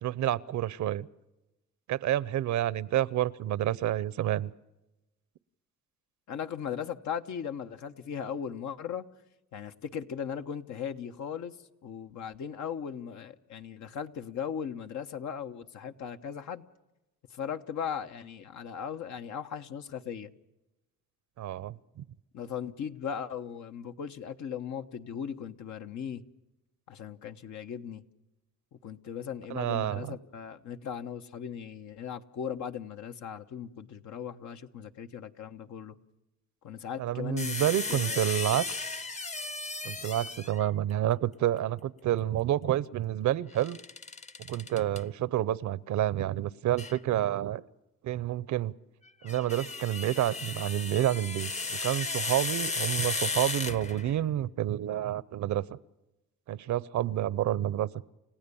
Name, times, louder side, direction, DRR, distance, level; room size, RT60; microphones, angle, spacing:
voice 1, 0.0-1.1 1.9-4.5 21.4-22.0 29.5-30.2 37.0-38.7 39.8-43.8 44.5-47.6 48.0-48.7 49.2-55.6 56.5-57.9, right 12 dB, 70° right, 0.8 m, -29 dB
voice 2, 6.3-9.1 9.5-11.6 11.8-16.6 17.3-20.3 22.3-26.2 26.9-28.0 28.8-36.0 36.6-37.6 37.9-38.3, left 8 dB, 70° left, 1.2 m, -38 dB
sound 1, 37.4-40.7 43.6-45.0 46.8-47.0 49.1-54.2, left 3 dB, 25° left, 0.9 m, -35 dB
30.0 x 16.0 x 7.0 m
cardioid pair, 90°, 30 cm